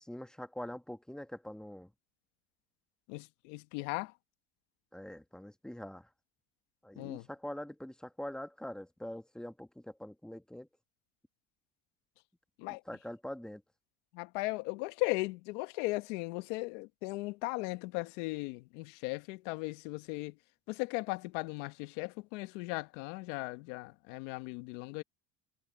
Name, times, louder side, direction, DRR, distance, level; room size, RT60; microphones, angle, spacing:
voice 1, 0.0-1.9 4.9-6.1 6.8-10.7 12.6-13.6, left 1 dB, ahead, 1.4 m, -44 dB
voice 2, 3.1-4.1 7.0-7.3 12.6-12.8 14.1-20.3 20.7-25.0, left 23 dB, 80° left, 1.3 m, -37 dB
supercardioid pair, 115°, 36 cm